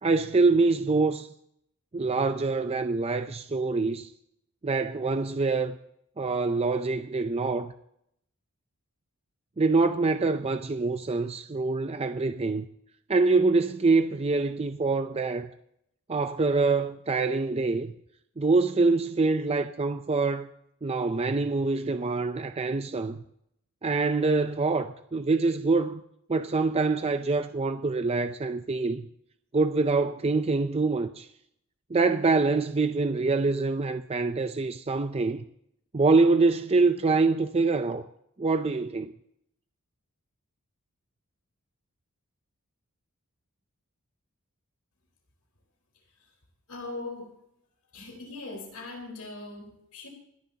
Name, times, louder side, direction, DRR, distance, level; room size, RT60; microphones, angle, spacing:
voice 1, 0.0-1.3 1.9-4.1 4.6-5.8 6.2-7.7 9.6-12.7 13.1-15.5 16.1-17.9 18.4-20.5 20.8-23.2 23.8-26.0 26.3-29.1 29.5-31.3 31.9-35.4 35.9-38.1 38.4-39.1, right 3 dB, 25° right, 0.5 m, -25 dB
voice 2, 46.7-47.3 47.9-50.1, left 2 dB, 85° left, 4.5 m, -40 dB
26.5 x 10.5 x 2.9 m
head